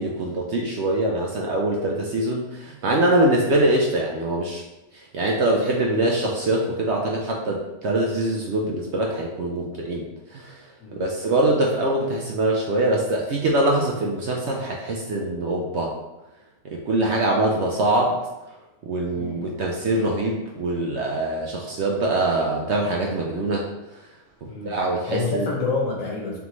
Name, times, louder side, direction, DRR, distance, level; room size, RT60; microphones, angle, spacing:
voice 1, 0.0-4.6 5.1-10.6 11.0-15.9 16.7-18.2 18.9-23.7 24.4-25.5, right 1 dB, 65° right, -1 dB, 0.7 m, -23 dB
voice 2, 19.1-19.6 24.5-24.8 25.1-26.4, left 3 dB, 65° left, -2 dB, 1.3 m, -28 dB
3.8 x 3.5 x 3.0 m, 0.99 s
omnidirectional pair, 1.5 m